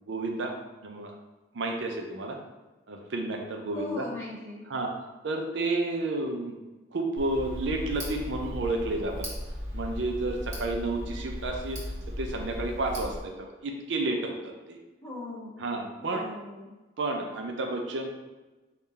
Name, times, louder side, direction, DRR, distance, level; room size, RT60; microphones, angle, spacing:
voice 1, 0.1-0.5 0.8-1.1 1.5-2.4 2.9-4.1 4.7-4.9 5.2-6.5 6.9-9.3 9.7-11.8 12.2-14.8 15.6-16.2 17.0-18.1, right 2 dB, 85° right, 2 dB, 0.6 m, -31 dB
voice 2, 3.7-4.7 15.0-15.6 16.0-16.7, left 1 dB, 15° left, -8 dB, 1.0 m, -38 dB
Tick, 7.2-13.2, equal, 40° right, 1.2 m, -37 dB
3.7 x 2.4 x 4.1 m, 1.1 s
head